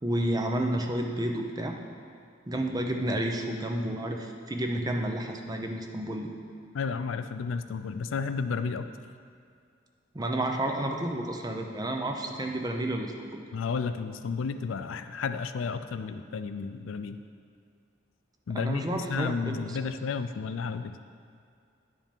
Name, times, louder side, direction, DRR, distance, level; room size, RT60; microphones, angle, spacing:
voice 1, 0.0-1.8 2.5-6.3 10.1-13.4 18.5-19.8, right 1 dB, 20° right, 2 dB, 0.6 m, -31 dB
voice 2, 6.7-8.8 13.5-17.2 18.5-20.9, left 5 dB, 75° left, 10 dB, 0.4 m, -32 dB
10.5 x 5.1 x 5.3 m, 2.3 s
head